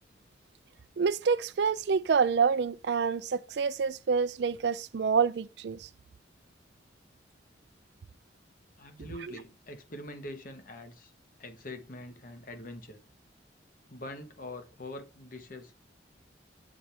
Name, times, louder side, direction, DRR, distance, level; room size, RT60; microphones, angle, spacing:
voice 1, 1.0-5.9, right 5 dB, 65° right, 0.4 m, -27 dB
voice 2, 8.8-11.1 11.4-13.0 13.9-15.8, left 1 dB, 50° left, 1.2 m, -44 dB
7.5 x 4.4 x 3.3 m
head